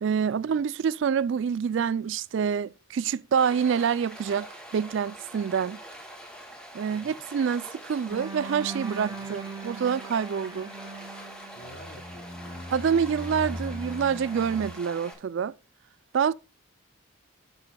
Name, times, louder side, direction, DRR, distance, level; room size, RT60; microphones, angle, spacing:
voice 1, 0.0-5.8 6.7-10.7 12.7-15.5 16.1-16.3, right 7 dB, 60° right, 0.3 m, -27 dB
Stream, 3.4-15.1, equal, 5° left, 2.1 m, -45 dB
sound 1, 8.1-14.7, right 2 dB, 20° right, 1.9 m, -39 dB
voice 2, 11.5-12.7, equal, 60° left, 3.5 m, -50 dB
12.0 x 7.0 x 2.2 m
head